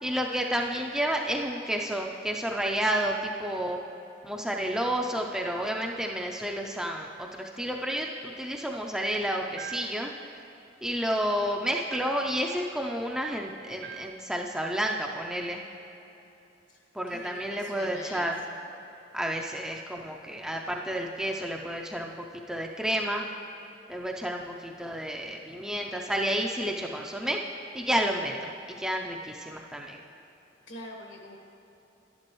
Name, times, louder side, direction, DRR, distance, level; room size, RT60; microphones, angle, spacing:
voice 1, 0.0-3.8 4.2-10.1 10.8-15.6 16.9-18.4 19.1-22.1 22.5-23.3 23.9-27.4 27.7-30.0, equal, 5° right, 0 dB, 0.4 m, -30 dB
sound 1, 9.6-10.1 11.9-12.4 13.8-14.2, right 8 dB, 60° right, 0.5 m, -42 dB
voice 2, 16.7-18.6 30.7-31.4, left 1 dB, 70° left, 0 dB, 1.5 m, -45 dB
11.5 x 10.5 x 3.1 m, 2.9 s
head